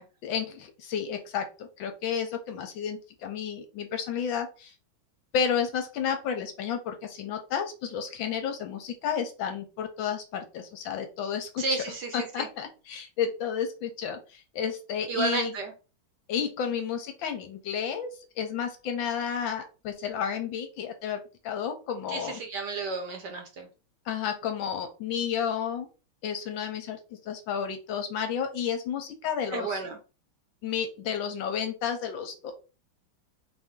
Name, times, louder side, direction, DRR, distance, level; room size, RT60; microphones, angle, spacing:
voice 1, 0.2-4.7 5.3-11.8 12.1-15.5 16.3-18.1 18.4-22.4 24.1-25.9 26.2-29.8 30.6-32.5, left 7 dB, 75° left, 6 dB, 1.3 m, -31 dB
voice 2, 11.6-12.1 12.4-12.5 15.1-15.7 22.1-23.7 29.5-30.0, right 4 dB, 65° right, 4 dB, 1.1 m, -32 dB
4.4 x 2.6 x 3.6 m, 0.32 s
omnidirectional pair, 2.4 m